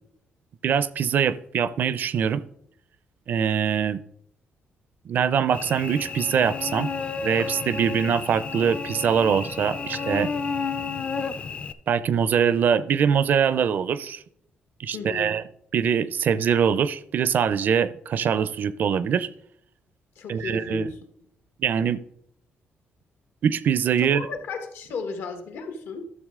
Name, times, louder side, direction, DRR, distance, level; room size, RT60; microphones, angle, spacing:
voice 1, 0.6-2.4 3.3-4.0 5.1-6.9 7.2-10.3 11.9-14.2 14.8-15.4 15.7-19.3 20.3-20.9 21.6-22.0 23.4-24.2, right 7 dB, 50° right, 16 dB, 0.4 m, -23 dB
Cricket / Buzz, 5.5-11.7, left 5 dB, 30° left, 0.5 m, -31 dB
voice 2, 14.9-15.3 20.1-21.0 24.0-26.1, left 4 dB, 70° left, 6 dB, 1.4 m, -34 dB
12.0 x 6.9 x 3.6 m, 0.69 s
cardioid pair, 170°, 4 cm